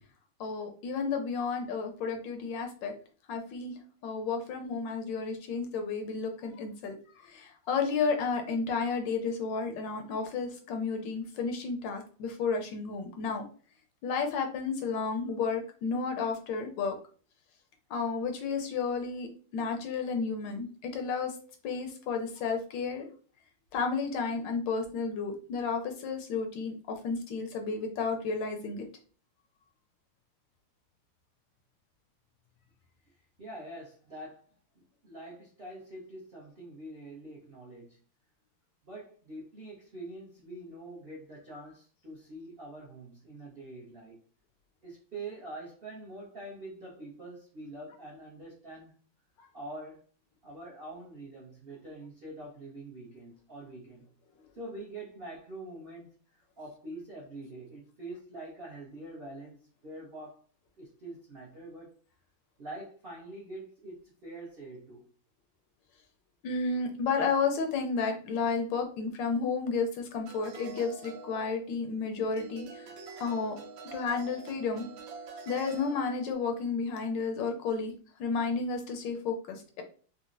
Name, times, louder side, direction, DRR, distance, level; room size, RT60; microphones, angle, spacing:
voice 1, 0.4-2.9 3.3-3.7 4.0-7.0 7.2-13.5 14.0-16.9 17.9-21.4 21.6-23.1 23.7-28.8 66.4-72.9 73.2-73.6 73.9-74.9 75.5-77.9 78.2-79.8, left 5 dB, 75° left, 4 dB, 1.2 m, -32 dB
voice 2, 33.4-38.0 38.8-44.2 44.8-48.9 49.5-50.1 50.4-54.0 54.5-60.4 60.8-61.9 62.6-65.1, right 2 dB, 60° right, -6 dB, 0.6 m, -45 dB
sound 1, 70.2-72.0 72.4-76.3, right 4 dB, 80° right, 1.3 m, -46 dB
3.9 x 2.1 x 2.5 m, 0.41 s
omnidirectional pair, 2.2 m